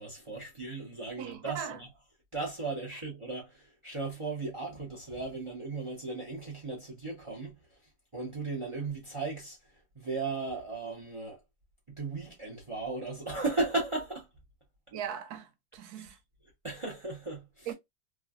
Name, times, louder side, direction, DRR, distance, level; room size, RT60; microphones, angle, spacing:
voice 1, 0.0-1.9 2.3-7.8 8.1-11.4 11.9-14.3 16.6-17.7, right 3 dB, 25° right, 0.8 m, -36 dB
voice 2, 1.2-1.8 14.9-16.2 17.7-17.8, right 8 dB, 85° right, 1.2 m, -39 dB
3.4 x 2.3 x 2.3 m
omnidirectional pair, 1.6 m